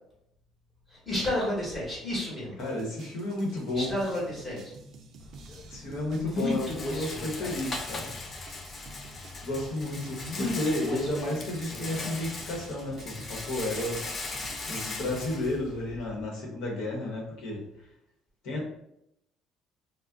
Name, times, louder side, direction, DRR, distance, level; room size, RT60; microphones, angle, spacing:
voice 1, 0.9-2.6 3.7-4.7 6.2-7.5 10.1-11.3 11.7-12.2, left 1 dB, 10° left, -6 dB, 1.2 m, -32 dB
voice 2, 2.6-3.9 5.7-8.1 9.4-14.0 14.7-17.6 18.4-18.7, left 1 dB, 70° left, -2 dB, 1.0 m, -32 dB
sound 1, 2.6-15.1, right 3 dB, 50° right, 0.4 m, -51 dB
Rattle, 5.2-16.2, left 3 dB, 30° left, 0.4 m, -39 dB
2.4 x 2.1 x 3.5 m, 0.78 s
cardioid pair, 135°, 0 cm